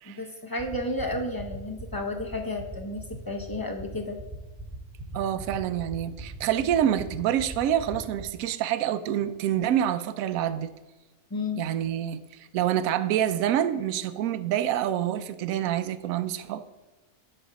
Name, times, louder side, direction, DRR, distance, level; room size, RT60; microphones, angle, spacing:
voice 1, 0.0-4.2 11.3-11.6, left 2 dB, 30° left, 3 dB, 0.4 m, -32 dB
sound 1, 0.6-8.2, right 3 dB, 15° right, 3.0 m, -39 dB
voice 2, 5.1-10.7 11.6-12.2 12.5-16.6, right 10 dB, 70° right, 11 dB, 1.0 m, -27 dB
11.0 x 4.2 x 5.1 m, 1.1 s
omnidirectional pair, 1.6 m